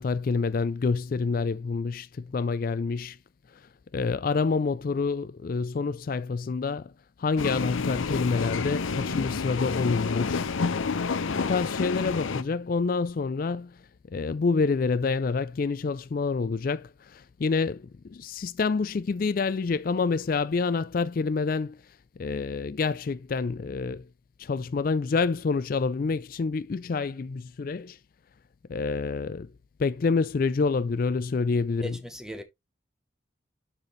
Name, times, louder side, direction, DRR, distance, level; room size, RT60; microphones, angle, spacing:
voice 1, 0.0-3.2 3.9-6.9 7.2-10.5 11.3-13.8 14.1-21.8 22.2-24.1 24.4-28.0 28.7-29.5 29.8-32.0, left 4 dB, 45° left, 0.3 m, -27 dB
sound 1, 7.4-12.4, left 4 dB, 85° left, 0.6 m, -29 dB
voice 2, 31.8-32.4, equal, 5° right, 0.8 m, -38 dB
12.0 x 4.4 x 3.2 m
head